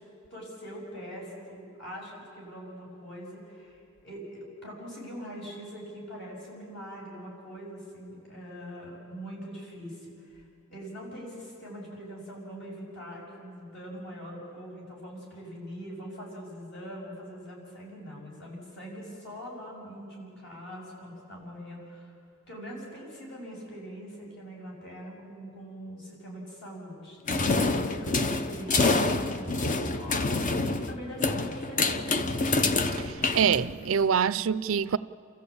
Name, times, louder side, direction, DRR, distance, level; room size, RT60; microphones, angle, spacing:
voice 1, 0.3-10.4 10.7-22.1 22.5-30.5 30.9-32.3, equal, 60° left, 7.0 m, -42 dB
sound 1, 27.3-34.0, left 3 dB, 40° left, 0.9 m, -27 dB
voice 2, 32.9-35.0, right 7 dB, 75° right, 0.5 m, -25 dB
29.0 x 14.0 x 8.6 m
head